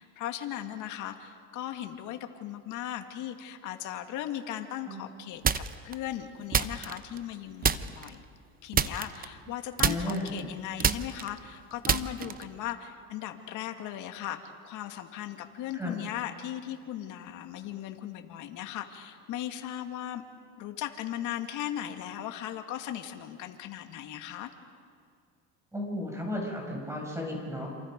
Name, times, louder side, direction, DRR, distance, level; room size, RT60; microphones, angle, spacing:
voice 1, 0.0-8.2 8.6-20.2 20.6-24.5, left 11 dB, 70° left, 5 dB, 2.1 m, -38 dB
sound 1, 5.4-5.9 6.5-7.3 7.6-8.1 8.7-9.5 9.8-12.6, right 7 dB, 30° right, 0.8 m, -28 dB
voice 2, 9.8-10.3 15.7-16.0 25.7-27.7, left 1 dB, 10° right, -1 dB, 7.0 m, -34 dB
28.0 x 27.5 x 5.3 m, 2.2 s
cardioid pair, 105°, 31 cm